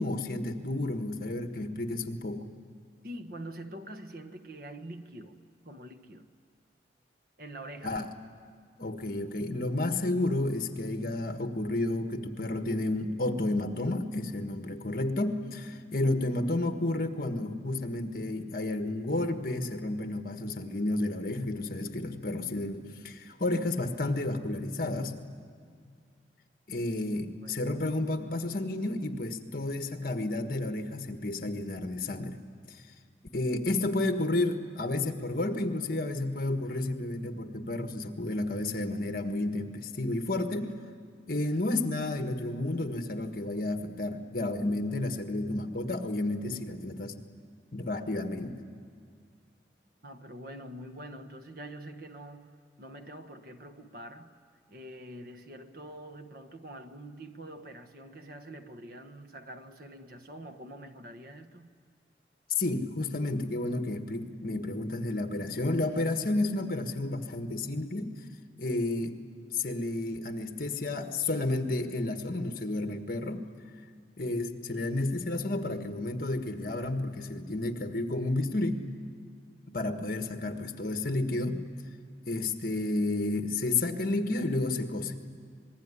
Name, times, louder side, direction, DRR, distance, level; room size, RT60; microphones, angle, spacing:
voice 1, 0.0-2.5 7.8-8.1 8.8-25.2 26.7-32.4 32.7-32.8 33.3-40.7 41.3-47.2 47.7-48.5 62.6-68.1 68.6-69.2 69.5-73.5 74.2-78.8 79.7-81.6 82.3-85.3, left 2 dB, 50° left, 1.5 m, -31 dB
voice 2, 3.0-5.4 5.6-6.3 7.4-8.0 27.4-27.6 50.0-54.3 54.7-61.7, right 1 dB, 50° right, 1.3 m, -45 dB
27.0 x 20.5 x 9.9 m
head